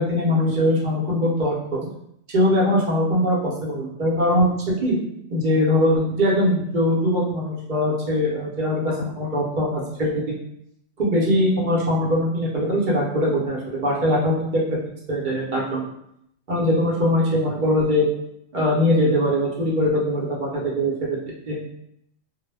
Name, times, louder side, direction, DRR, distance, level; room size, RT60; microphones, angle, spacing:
voice 1, 0.0-1.9 2.3-4.5 4.8-5.0 5.3-10.3 11.0-14.6 15.1-15.9 16.5-18.1 18.5-21.2 21.5-21.6, left 1 dB, 50° right, -5 dB, 0.7 m, -21 dB
2.1 x 2.1 x 3.2 m, 0.75 s
omnidirectional pair, 1.3 m